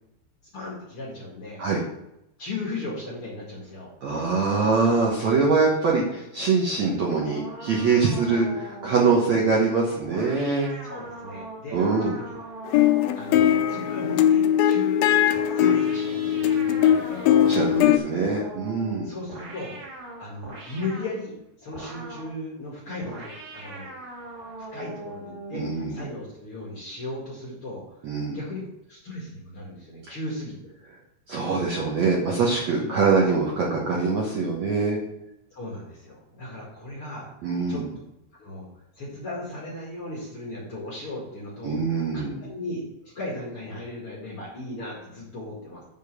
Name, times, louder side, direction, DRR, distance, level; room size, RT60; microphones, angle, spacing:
voice 1, 0.5-1.7 2.4-3.9 10.8-12.3 13.1-17.3 19.0-19.8 20.2-21.3 21.6-23.9 24.6-28.6 28.9-30.6 32.8-33.0 35.5-37.3 37.7-37.8 38.3-38.7 39.0-41.8 42.1-45.8, left 2 dB, 45° left, -4 dB, 2.0 m, -36 dB
voice 2, 4.0-10.7 11.7-12.1 17.4-19.1 25.5-26.0 28.0-28.4 31.3-35.0 37.4-37.8 41.6-42.4, right 4 dB, 65° right, -3 dB, 1.7 m, -23 dB
sound 1, 6.9-14.7 15.3-17.8 18.2-21.2 21.7-22.4 23.0-25.8, right 1 dB, 50° right, 2.5 m, -40 dB
sound 2, 12.7-18.0, left 10 dB, 85° left, 2.1 m, -20 dB
7.3 x 5.3 x 6.5 m, 0.84 s
omnidirectional pair, 4.8 m